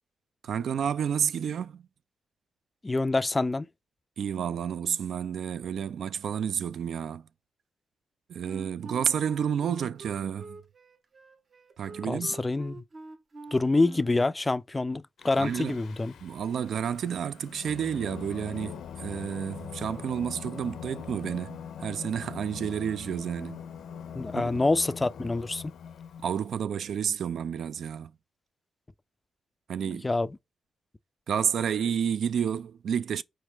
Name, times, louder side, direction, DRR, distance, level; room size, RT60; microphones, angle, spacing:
voice 1, 0.4-1.9 4.2-7.3 8.3-10.6 11.8-12.4 15.4-15.8 16.2-23.6 24.3-24.6 26.2-28.2 29.7-30.1 31.3-33.2, right 8 dB, 70° right, 0.3 m, -30 dB
voice 2, 2.8-3.7 12.1-12.8 13.5-16.1 24.2-25.7 29.9-30.3, left 2 dB, 25° left, 0.3 m, -26 dB
Wind instrument woodwind instrument, 8.4-14.3, right 4 dB, 50° right, 1.0 m, -45 dB
Singing, 15.2-26.5, left 8 dB, 80° left, 0.5 m, -42 dB
4.4 x 3.0 x 3.4 m
cardioid pair, 65°, 0 cm